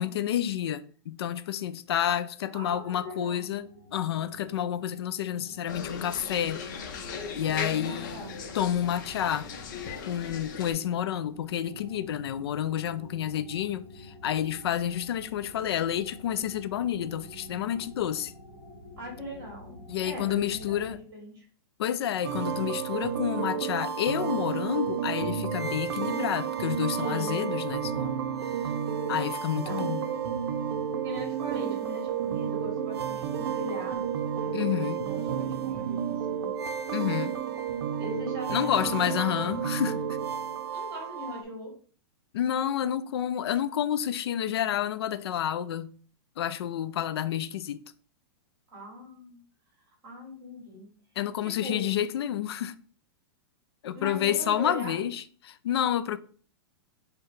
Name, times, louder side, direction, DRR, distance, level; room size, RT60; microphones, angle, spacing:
voice 1, 0.0-6.6 7.4-8.2 8.5-9.5 10.1-18.3 19.9-21.0 21.8-28.2 29.1-30.1 34.5-35.1 36.9-37.4 38.5-40.0 42.3-45.9 46.4-47.8 51.2-52.8 53.8-56.2, left 10 dB, 75° left, 0.4 m, -29 dB
voice 2, 2.5-3.4 7.4-8.3 19.0-21.4 26.9-27.6 29.5-30.0 31.0-36.5 38.0-39.6 40.7-41.8 48.7-49.4 50.0-50.9 51.4-51.9 53.9-55.1, left 1 dB, 25° right, 2.3 m, -40 dB
sound 1, 2.6-20.9, left 1 dB, ahead, 1.8 m, -49 dB
sound 2, 5.7-10.7, left 6 dB, 50° left, 0.7 m, -38 dB
sound 3, 22.2-41.4, right 8 dB, 75° right, 0.6 m, -31 dB
4.7 x 2.2 x 4.6 m
supercardioid pair, 170°, 13 cm